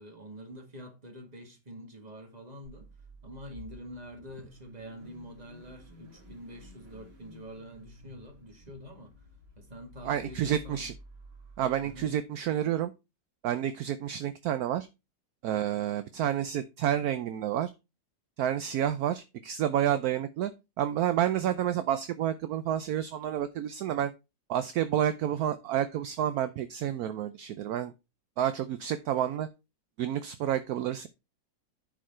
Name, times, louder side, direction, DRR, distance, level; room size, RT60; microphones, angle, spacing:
voice 1, 0.0-2.9 3.2-9.2 9.6-10.8 11.8-12.1, equal, 25° right, 2.0 m, -46 dB
Car / Idling / Accelerating revving vroom, 2.6-12.1, left 1 dB, 85° right, 3.1 m, -52 dB
voice 2, 10.0-10.9 11.6-12.9 13.4-14.9 15.4-17.7 18.4-20.5 20.8-24.1 24.5-27.9 28.4-29.5 30.0-31.1, right 10 dB, 70° right, 1.0 m, -29 dB
10.0 x 4.8 x 4.4 m
omnidirectional pair, 1.8 m